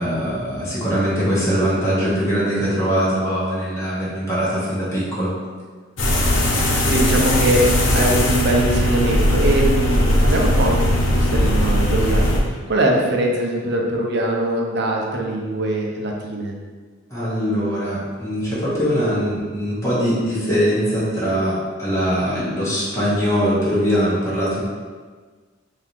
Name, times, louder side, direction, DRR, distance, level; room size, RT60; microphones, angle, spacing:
voice 1, 0.0-5.3 17.1-24.6, equal, 15° left, -10 dB, 1.3 m, -21 dB
sound 1, 6.0-12.4, left 1 dB, 80° left, 0.8 m, -18 dB
voice 2, 6.6-16.5, right 1 dB, 60° right, 0 dB, 0.7 m, -22 dB
3.8 x 2.8 x 4.7 m, 1.5 s
head